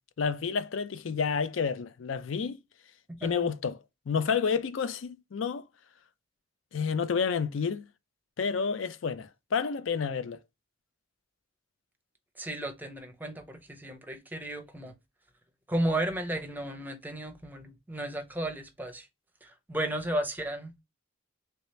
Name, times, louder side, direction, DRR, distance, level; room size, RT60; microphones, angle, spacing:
voice 1, 0.2-2.6 3.2-5.7 6.7-7.8 8.4-10.4, left 6 dB, 80° left, 0.4 m, -30 dB
voice 2, 12.4-14.9 15.7-19.1 19.4-20.8, right 1 dB, 10° right, 0.5 m, -34 dB
3.3 x 2.8 x 3.1 m
head